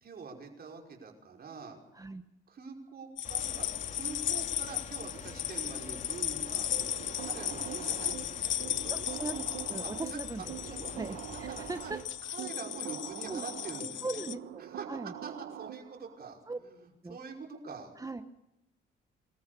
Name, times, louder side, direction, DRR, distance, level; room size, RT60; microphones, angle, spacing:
voice 1, 0.0-1.8 2.5-6.7 7.2-9.1 9.8-10.9 11.3-11.9 12.2-14.3 14.6-17.9, right 4 dB, 50° right, 1 dB, 5.5 m, -45 dB
sound 1, 3.2-14.3, left 12 dB, 70° left, 0.8 m, -36 dB
sound 2, 3.2-12.0, left 4 dB, 40° left, 3.1 m, -47 dB
sound 3, 6.7-16.2, right 11 dB, 70° right, 1.1 m, -44 dB
voice 2, 8.9-10.5 11.0-12.0 13.3-13.4 14.0-15.1 16.5-16.6 17.0-17.2 18.0-18.2, right 3 dB, 15° right, 9 dB, 1.1 m, -39 dB
26.0 x 14.5 x 6.9 m, 0.92 s
cardioid pair, 90°, 20 cm